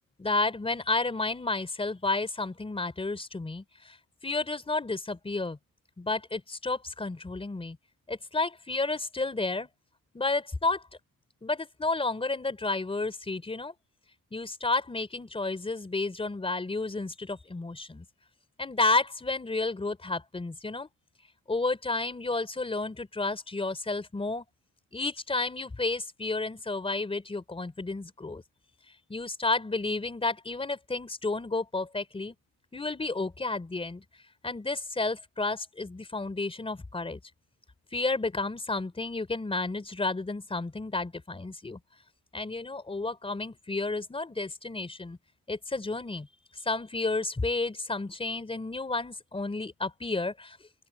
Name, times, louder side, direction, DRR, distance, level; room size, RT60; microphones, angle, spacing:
voice 1, 0.2-3.6 4.2-5.6 6.0-7.8 8.1-9.7 10.1-10.8 11.4-13.7 14.3-18.0 18.6-20.9 21.5-24.4 24.9-28.4 29.1-32.3 32.7-34.0 34.4-37.2 37.9-41.8 42.3-45.2 45.5-46.3 46.7-50.6, left 3 dB, 15° left, 3.9 m, -31 dB
open air
cardioid pair, 145°, 34 cm